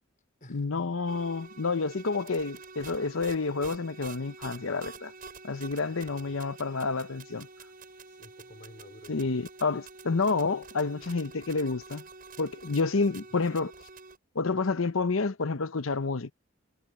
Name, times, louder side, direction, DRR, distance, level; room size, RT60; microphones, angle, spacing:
voice 1, 0.5-5.1 5.4-7.5 9.1-12.0 12.4-13.7 14.3-16.3, left 4 dB, 70° left, 0.8 m, -29 dB
sound 1, 1.1-14.2, right 4 dB, 40° right, 8.0 m, -47 dB
voice 2, 5.8-6.4 8.1-9.3 11.6-11.7 13.1-13.3, left 1 dB, 40° left, 4.2 m, -53 dB
head